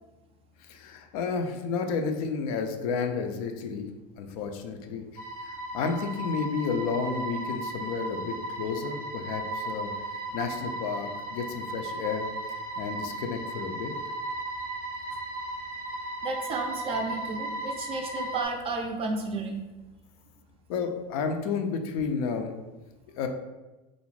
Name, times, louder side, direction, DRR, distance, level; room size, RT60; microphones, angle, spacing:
voice 1, 0.6-3.9 4.2-9.9 10.3-13.9 20.7-22.5 23.2-23.3, left 5 dB, 75° left, 5 dB, 0.4 m, -31 dB
sound 1, 5.2-18.5, right 2 dB, 10° left, 0.6 m, -36 dB
voice 2, 16.2-19.7, right 3 dB, 30° right, 3 dB, 0.4 m, -32 dB
2.5 x 2.0 x 3.1 m, 1.1 s
supercardioid pair, 105°, 19 cm